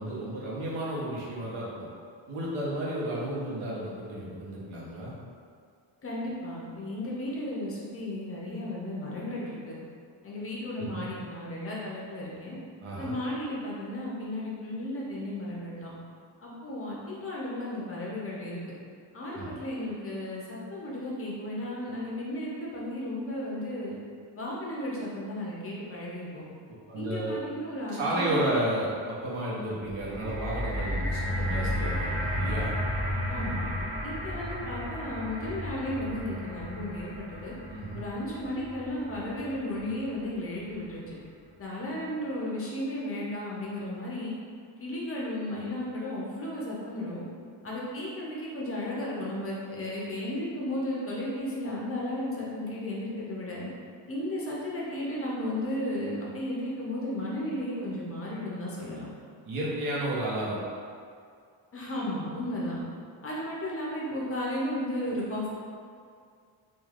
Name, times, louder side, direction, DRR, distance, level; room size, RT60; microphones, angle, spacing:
voice 1, 0.0-1.9 2.3-5.1 10.8-11.1 12.8-13.1 19.3-19.5 26.9-27.3 27.9-32.7 37.7-38.0 59.4-60.6, right 1 dB, 85° right, -6 dB, 0.9 m, -32 dB
voice 2, 6.0-9.8 10.2-12.6 13.0-15.9 16.4-18.7 19.1-24.0 24.3-26.4 26.9-28.7 33.3-33.7 34.0-37.5 37.9-41.1 41.6-44.3 44.8-47.2 47.6-53.7 54.1-59.1 61.7-62.8 63.2-65.5, left 1 dB, 30° left, -5 dB, 0.5 m, -34 dB
sound 1, 29.9-40.1 40.8-40.9, equal, 45° right, 1.2 m, -33 dB
3.2 x 2.4 x 2.4 m, 2.2 s
cardioid pair, 130°, 48 cm